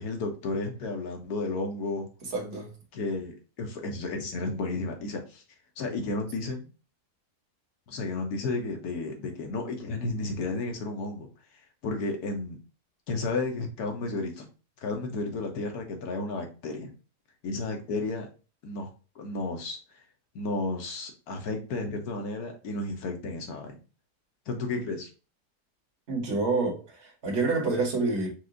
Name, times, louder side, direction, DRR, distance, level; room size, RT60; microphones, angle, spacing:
voice 1, 0.0-2.1 2.9-5.4 5.8-6.7 7.9-11.3 11.8-12.6 13.1-14.5 14.8-16.9 17.4-18.3 18.6-18.9 19.1-20.0 20.3-23.8 24.5-25.1, left 3 dB, 70° left, 1.4 m, -32 dB
voice 2, 2.3-2.7 26.1-28.3, right 3 dB, 45° right, 1.6 m, -28 dB
4.7 x 2.5 x 3.7 m
omnidirectional pair, 1.7 m